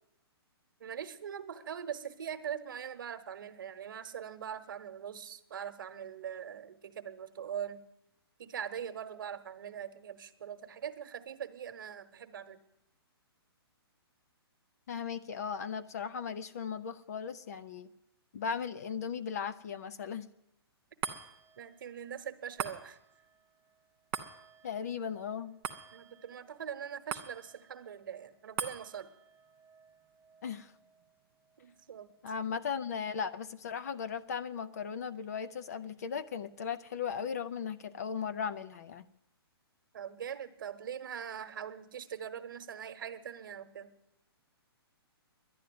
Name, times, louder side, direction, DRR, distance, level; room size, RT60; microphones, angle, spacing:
voice 1, 0.8-7.8 8.4-12.6 21.6-23.0 25.9-29.1 31.6-32.1 39.9-43.9, right 8 dB, 55° right, 10 dB, 1.1 m, -42 dB
voice 2, 14.9-17.9 18.3-20.3 24.6-25.5 30.4-30.7 32.2-39.0, left 6 dB, 40° left, 13 dB, 0.6 m, -37 dB
sound 1, 21.0-33.6 34.0-34.1, right 8 dB, 10° right, 0.5 m, -45 dB
11.0 x 11.0 x 9.4 m, 0.86 s
hypercardioid pair, 175°, 13 cm